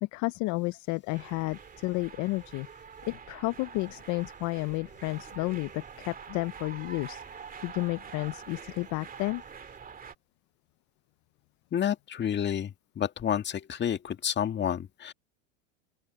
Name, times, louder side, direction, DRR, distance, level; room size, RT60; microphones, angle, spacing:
voice 1, 0.0-2.7 3.1-7.2 7.6-9.4, left 23 dB, 50° left, 0.7 m, -32 dB
sound 1, 1.1-10.1, right 6 dB, 20° right, 2.3 m, -46 dB
voice 2, 11.7-15.1, left 9 dB, 30° left, 1.8 m, -30 dB
open air
supercardioid pair, 110°, 38 cm